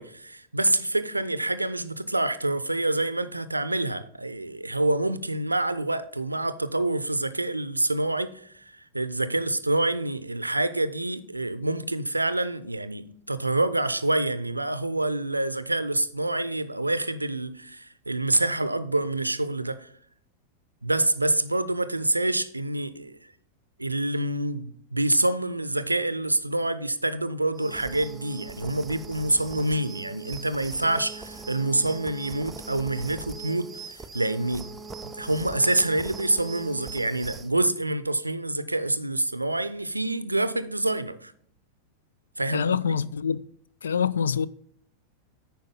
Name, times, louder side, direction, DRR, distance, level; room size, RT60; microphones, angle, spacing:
voice 1, 0.0-19.9 20.8-23.2 23.8-34.7 35.0-41.3 42.4-43.0, right 2 dB, 85° right, 0.5 m, -27 dB
sound 1, 27.5-37.5, right 4 dB, 15° right, 0.6 m, -41 dB
voice 2, 42.5-43.4 43.8-44.5, left 7 dB, 70° left, 0.3 m, -25 dB
9.1 x 5.2 x 5.3 m
figure-of-eight pair, 90°, 0 cm